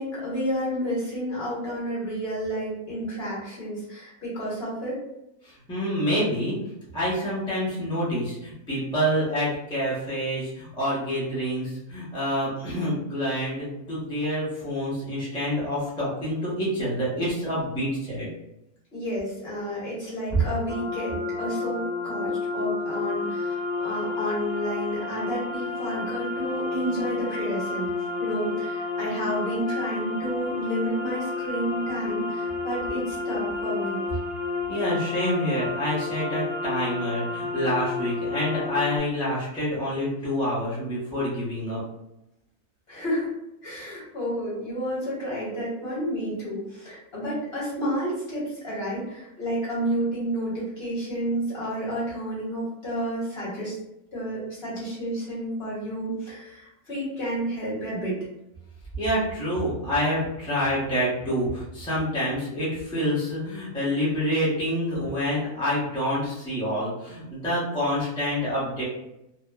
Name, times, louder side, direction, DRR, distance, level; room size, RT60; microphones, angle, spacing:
voice 1, 0.0-5.0 18.9-27.9 28.2-34.0 42.9-43.3 43.6-53.7 54.1-58.2, equal, 45° left, -8 dB, 1.3 m, -30 dB
voice 2, 5.7-6.5 6.9-18.3 20.3-20.4 34.7-41.8 59.0-68.8, equal, 5° left, -9 dB, 0.6 m, -27 dB
sound 1, 20.7-39.0, left 3 dB, 35° right, 0.4 m, -31 dB
2.8 x 2.3 x 2.3 m, 0.87 s
omnidirectional pair, 1.6 m